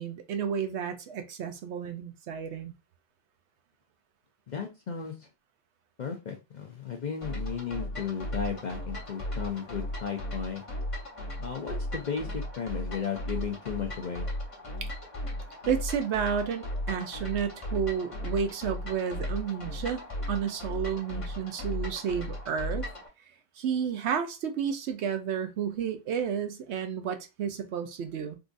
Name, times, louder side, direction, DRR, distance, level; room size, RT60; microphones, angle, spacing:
voice 1, 0.0-2.7 14.8-14.9 15.7-20.0 20.3-22.9 23.6-28.4, right 7 dB, 75° right, 0.9 m, -31 dB
voice 2, 4.5-5.3 6.0-10.6 11.4-14.3, left 6 dB, 50° left, 0.6 m, -35 dB
sound 1, 7.2-23.1, left 1 dB, 30° left, 0.9 m, -36 dB
3.7 x 2.5 x 2.5 m
omnidirectional pair, 1.2 m